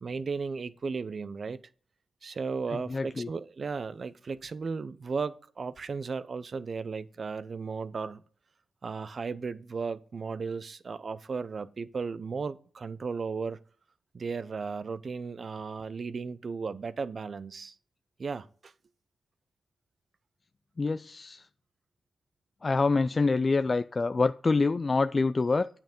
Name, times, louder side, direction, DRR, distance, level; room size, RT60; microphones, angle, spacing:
voice 1, 0.0-1.6 2.2-8.2 8.8-13.6 14.1-17.7 18.2-18.7, right 5 dB, 50° right, 0.6 m, -35 dB
voice 2, 2.7-3.3 20.8-21.4 22.6-25.7, left 3 dB, 40° left, 0.3 m, -26 dB
9.1 x 5.8 x 5.3 m
cardioid pair, 70°, 0 cm